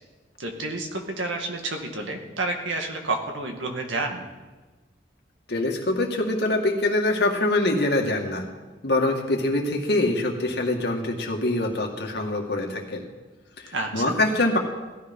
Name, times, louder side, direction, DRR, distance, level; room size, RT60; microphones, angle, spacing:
voice 1, 0.4-4.3 13.7-14.1, right 2 dB, 85° right, 3 dB, 2.2 m, -30 dB
voice 2, 5.5-8.4 8.8-13.1 13.6-14.6, left 2 dB, 60° left, 1 dB, 2.2 m, -24 dB
17.0 x 13.0 x 5.6 m, 1.3 s
head